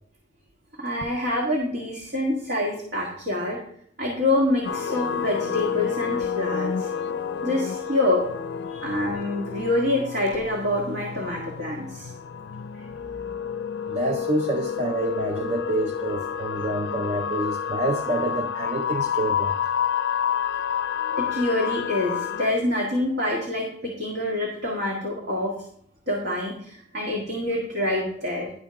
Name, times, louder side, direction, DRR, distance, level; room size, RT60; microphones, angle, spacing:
voice 1, 0.8-3.6 4.0-6.9 7.4-8.3 8.8-12.1 21.2-25.5 26.1-28.5, left 1 dB, 70° right, 1.8 m, -26 dB
sound 1, 4.6-22.5, left 7 dB, 65° left, 0.4 m, -29 dB
voice 2, 13.8-19.6, right 2 dB, 40° right, 0.5 m, -27 dB
11.0 x 3.7 x 5.7 m
head